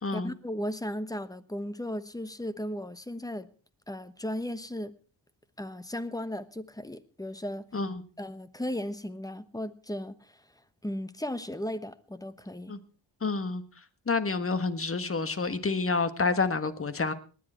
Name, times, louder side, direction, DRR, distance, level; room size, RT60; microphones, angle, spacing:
voice 1, 0.1-3.5 3.9-4.9 5.6-7.6 8.2-10.3 10.8-12.7, left 1 dB, 10° left, 13 dB, 1.1 m, -36 dB
voice 2, 13.2-13.6 14.1-17.1, left 4 dB, 30° left, 11 dB, 1.5 m, -28 dB
19.0 x 10.5 x 4.4 m, 0.38 s
cardioid pair, 75°, 44 cm